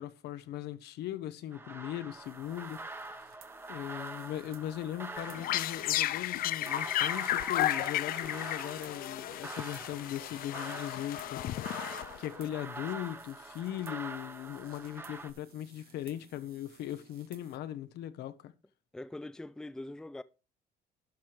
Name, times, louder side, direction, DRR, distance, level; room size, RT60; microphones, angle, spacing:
voice 1, 0.0-3.2 3.7-11.4 12.2-18.5, left 12 dB, 75° left, 0.9 m, -39 dB
sound 1, 1.5-15.3, right 2 dB, 15° right, 0.8 m, -45 dB
sound 2, 2.2-17.6, right 10 dB, 65° right, 1.1 m, -60 dB
sound 3, 5.2-12.5, left 14 dB, 60° left, 0.4 m, -33 dB
voice 2, 18.9-20.2, left 2 dB, 5° left, 0.4 m, -42 dB
12.0 x 4.4 x 4.9 m
cardioid pair, 110°, 17 cm